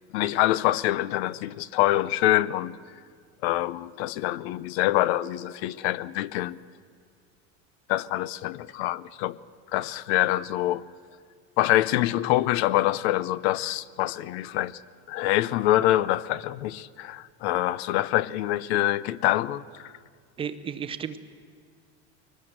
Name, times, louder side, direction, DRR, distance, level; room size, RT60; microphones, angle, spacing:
voice 1, 0.1-2.8 3.4-6.6 7.9-9.4 9.7-10.8 11.6-14.8 15.1-19.9, left 15 dB, 75° left, 0.8 m, -25 dB
voice 2, 20.4-21.2, right 7 dB, 15° right, 0.6 m, -33 dB
22.5 x 19.0 x 7.9 m
cardioid pair, 180°, 33 cm